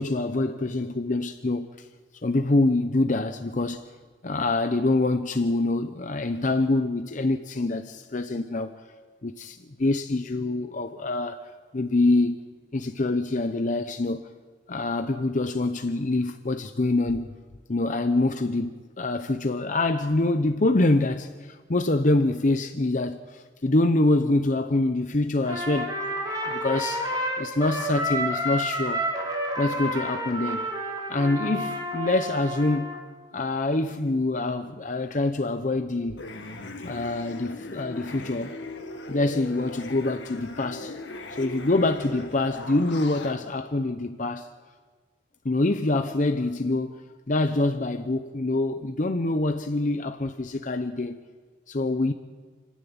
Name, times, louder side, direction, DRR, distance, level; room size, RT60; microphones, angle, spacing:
voice 1, 0.0-1.9 2.2-3.8 4.2-8.7 9.2-12.4 12.7-14.3 14.7-17.3 17.7-25.9 26.5-27.1 27.4-29.0 29.6-30.7 31.1-32.9 33.3-36.2 36.8-38.6 39.1-41.0 41.3-44.5 45.4-51.2 51.7-52.1, left 2 dB, 45° left, 0.7 m, -25 dB
Trumpet, 25.4-33.0, equal, 25° right, 3.1 m, -30 dB
sound 1, 36.2-43.3, left 2 dB, 80° left, 1.8 m, -38 dB
29.0 x 10.5 x 8.8 m
head